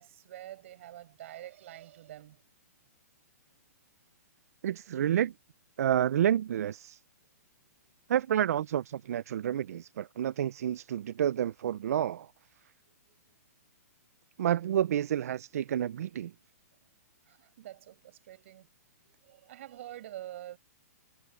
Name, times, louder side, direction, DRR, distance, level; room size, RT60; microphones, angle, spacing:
voice 1, 0.0-2.4 3.5-3.6 7.6-7.9 12.9-13.4 16.8-16.9 17.3-18.7 19.0-20.6, right 13 dB, 50° right, 6.1 m, -47 dB
voice 2, 4.6-5.3 5.8-7.0 8.1-12.3 14.4-16.3, right 10 dB, 65° right, 0.4 m, -29 dB
hypercardioid pair, 155°, 9 cm